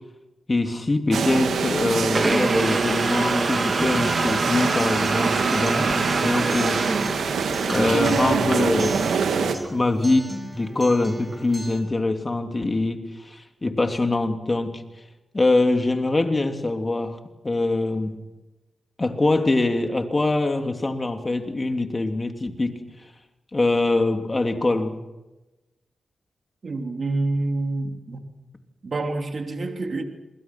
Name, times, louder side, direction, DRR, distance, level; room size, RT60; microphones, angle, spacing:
voice 1, 0.5-6.8 7.7-9.1 9.7-14.7 15.3-17.2 17.4-18.2 19.0-22.7 23.5-25.0, left 2 dB, 35° left, 5 dB, 3.2 m, -23 dB
sound 1, 1.1-9.5, right 6 dB, 85° right, 2.0 m, -25 dB
sound 2, 2.1-7.7, right 3 dB, 35° right, 1.8 m, -26 dB
Acoustic guitar, 3.8-11.8, right 1 dB, 15° right, 7.6 m, -35 dB
voice 2, 26.6-28.2 28.8-30.0, right 2 dB, 55° right, 4 dB, 2.9 m, -27 dB
28.0 x 21.0 x 6.1 m, 1.1 s
cardioid pair, 55°, 0 cm